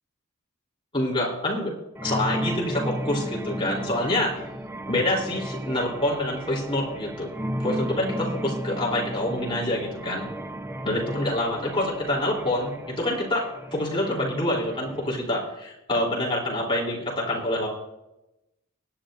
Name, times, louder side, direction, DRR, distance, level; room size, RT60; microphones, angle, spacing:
voice 1, 0.9-1.7 2.0-4.4 4.9-7.3 7.6-10.2 10.8-17.7, left 1 dB, 25° left, -3 dB, 3.4 m, -26 dB
sound 1, 2.0-15.2, right 1 dB, 10° right, 0.6 m, -34 dB
23.5 x 10.5 x 2.6 m, 0.91 s
head